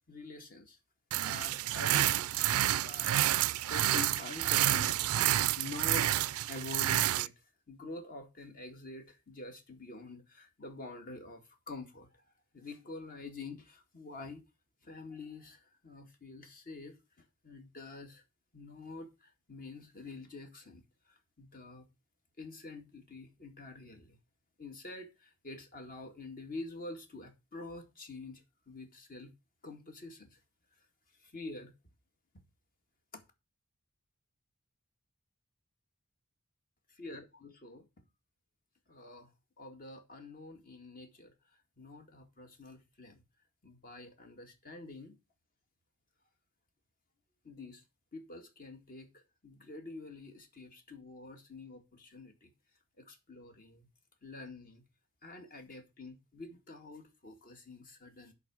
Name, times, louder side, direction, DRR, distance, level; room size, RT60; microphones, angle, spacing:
voice 1, 0.1-0.8 1.2-2.4 2.7-3.4 3.7-12.1 12.5-14.4 14.8-18.2 18.5-21.9 22.4-24.2 24.6-29.3 29.6-30.4 31.2-31.7 33.1-33.2 37.0-37.9 38.9-41.3 41.8-43.2 43.6-45.2 47.4-47.8 48.1-52.5 53.0-53.9 54.2-54.8 55.2-58.3, left 3 dB, 40° left, 2.0 m, -47 dB
sound 1, 1.1-7.3, right 13 dB, 80° right, 0.4 m, -29 dB
10.5 x 4.2 x 6.2 m
head